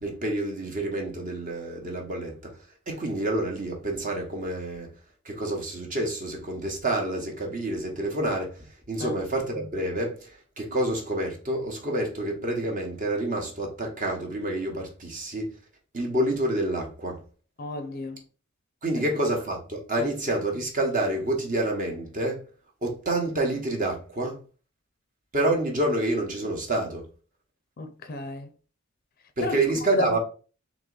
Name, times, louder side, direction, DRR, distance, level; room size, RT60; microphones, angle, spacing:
voice 1, 0.0-2.5 2.9-4.9 5.2-15.5 15.9-17.2 18.8-22.4 22.8-24.4 25.3-27.0 29.4-30.2, right 1 dB, 40° right, 1.0 m, -28 dB
voice 2, 17.6-18.2 20.0-20.1 27.8-28.5 29.4-29.6 29.9-30.2, left 2 dB, 45° left, 0.5 m, -32 dB
3.8 x 2.9 x 3.8 m
head